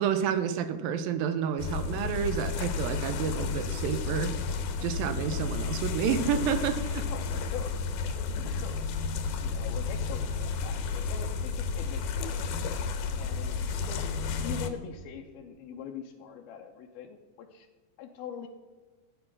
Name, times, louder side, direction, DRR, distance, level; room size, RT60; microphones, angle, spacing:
voice 1, 0.0-4.4 4.8-7.1, right 8 dB, 80° right, 10 dB, 2.5 m, -30 dB
sound 1, 1.6-14.7, left 5 dB, 70° left, 2.5 m, -32 dB
voice 2, 7.1-7.7 8.4-8.9 9.4-12.5 13.2-17.7 18.0-18.5, left 8 dB, 85° left, 0 dB, 2.7 m, -43 dB
14.0 x 8.9 x 6.0 m, 1.3 s
omnidirectional pair, 4.2 m